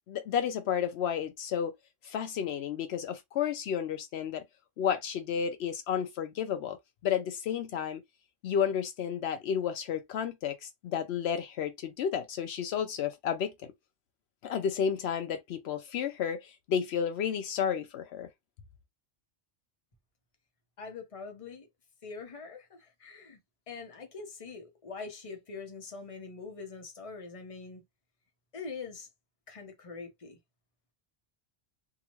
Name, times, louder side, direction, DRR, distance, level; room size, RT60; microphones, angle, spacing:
voice 1, 0.1-1.7 2.0-4.4 4.8-6.8 7.0-8.0 8.4-13.7 14.4-18.3, left 8 dB, 80° left, 0.8 m, -32 dB
voice 2, 20.8-21.7 22.0-23.4 23.7-27.8 28.5-29.1 29.5-30.4, left 4 dB, 35° left, 0.9 m, -43 dB
2.8 x 2.4 x 2.9 m
omnidirectional pair, 1.1 m